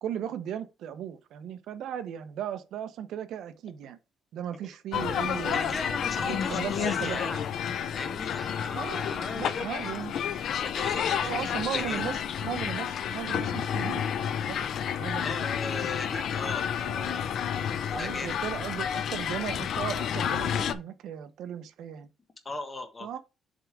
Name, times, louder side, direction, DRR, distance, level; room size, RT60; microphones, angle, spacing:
voice 1, 0.0-4.0 4.3-5.7 6.2-7.3 8.7-10.1 11.2-14.6 15.0-15.5 15.8-16.0 16.8-17.3 17.9-22.1 23.0-23.2, right 9 dB, 65° right, 0.8 m, -37 dB
sound 1, 4.9-20.7, left 8 dB, 55° left, 0.6 m, -30 dB
voice 2, 5.5-7.4 7.9-10.0 10.4-12.0 15.2-16.7 17.9-18.4 22.4-23.1, left 3 dB, 20° left, 1.3 m, -38 dB
7.6 x 3.5 x 4.7 m
cardioid pair, 175°, 0 cm